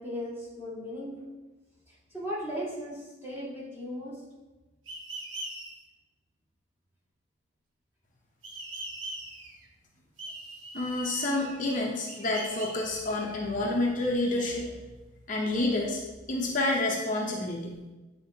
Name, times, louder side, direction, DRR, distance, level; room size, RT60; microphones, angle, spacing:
voice 1, 0.0-1.3 1.9-4.3, equal, 10° right, -8 dB, 1.8 m, -37 dB
sound 1, 4.9-5.7 8.4-9.7 10.2-11.7 12.1-13.7, right 1 dB, 80° right, 1.1 m, -41 dB
voice 2, 10.7-14.7 15.3-16.0 16.3-17.7, left 2 dB, 40° left, -1 dB, 0.6 m, -29 dB
8.6 x 4.3 x 2.7 m, 1.2 s
head